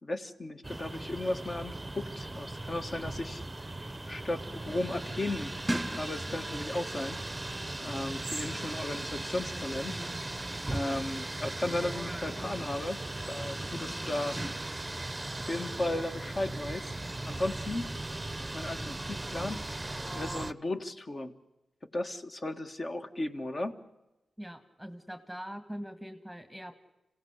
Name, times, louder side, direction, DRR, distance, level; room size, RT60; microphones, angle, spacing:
voice 1, 0.0-3.4 4.1-7.2 7.8-10.0 10.7-14.4 15.5-16.9 17.2-17.9 18.5-19.6 20.1-21.3 21.9-23.8, left 2 dB, 35° left, 8 dB, 1.8 m, -35 dB
sound 1, 0.6-20.5, right 2 dB, 15° right, 0.9 m, -37 dB
voice 2, 24.4-26.7, equal, ahead, 10 dB, 1.8 m, -42 dB
26.5 x 17.0 x 8.1 m, 0.96 s
cardioid pair, 75°, 0 cm